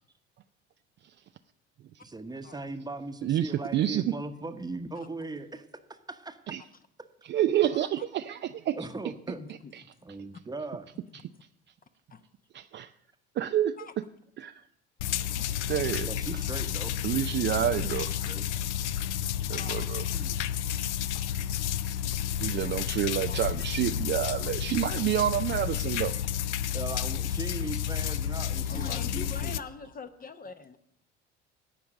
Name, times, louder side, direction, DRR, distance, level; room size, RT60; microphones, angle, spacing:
voice 1, 2.1-5.6 5.9-6.4 7.0-7.1 8.7-9.4 9.8-10.9 16.0-17.0 17.7-18.4 20.0-20.5 26.1-26.3 26.7-29.6, right 3 dB, 10° right, 8 dB, 1.0 m, -39 dB
voice 2, 3.2-4.0 6.5-6.6 7.3-8.8 12.5-12.9 13.4-13.7 14.4-14.5 15.7-16.1 17.0-18.1 19.5-20.0 22.4-26.1, right 11 dB, 35° right, 9 dB, 0.4 m, -28 dB
voice 3, 9.4-9.7 11.1-11.2 12.1-12.2 13.8-13.9 17.7-18.3 19.6-19.9 22.1-22.2 23.3-23.4 28.1-28.2 28.7-30.8, left 5 dB, 25° left, 10 dB, 0.8 m, -44 dB
sound 1, 15.0-29.6, left 10 dB, 75° left, 0.5 m, -31 dB
17.0 x 5.8 x 6.3 m, 0.74 s
figure-of-eight pair, 60°, 35 cm